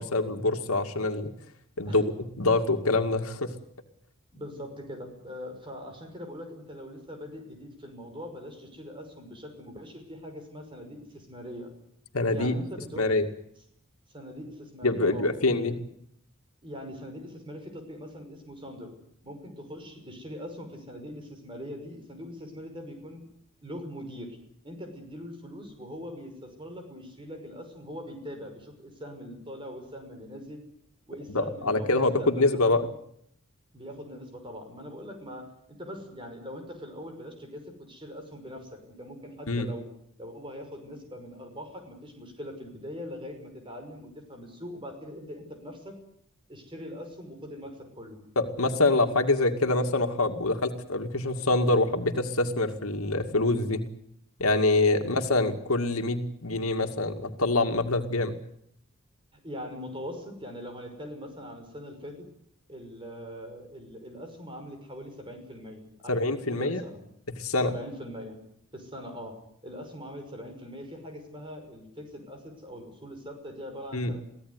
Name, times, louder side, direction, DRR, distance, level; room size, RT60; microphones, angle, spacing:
voice 1, 0.0-1.3 1.8-3.5 12.1-12.6 13.0-13.3 14.8-15.8 31.3-32.8 39.5-39.7 48.4-53.9 54.4-58.4 66.1-66.8 67.4-67.7 73.9-74.1, left 2 dB, 85° left, 6 dB, 2.3 m, -25 dB
voice 2, 4.3-11.7 12.3-13.1 14.1-15.3 16.6-18.9 19.2-23.2 23.6-24.4 24.6-30.6 31.1-32.8 33.7-39.8 40.2-46.0 46.5-48.2 55.0-55.2 59.4-62.3 62.7-67.0 67.6-68.4 68.7-69.3 69.6-74.2, equal, 25° right, 5 dB, 5.8 m, -42 dB
24.0 x 16.0 x 9.7 m, 0.71 s
head